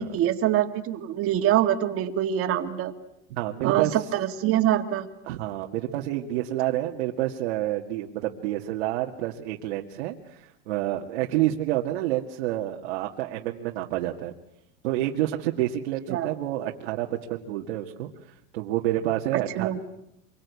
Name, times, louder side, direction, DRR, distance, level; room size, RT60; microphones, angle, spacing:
voice 1, 0.0-2.9 3.6-5.1 16.1-16.4 19.3-19.8, right 11 dB, 40° right, 6 dB, 2.0 m, -25 dB
voice 2, 3.3-4.0 5.3-14.3 14.8-18.1 18.5-20.0, right 14 dB, 85° right, 1 dB, 1.9 m, -28 dB
26.5 x 23.5 x 8.3 m, 0.83 s
supercardioid pair, 145°, 33 cm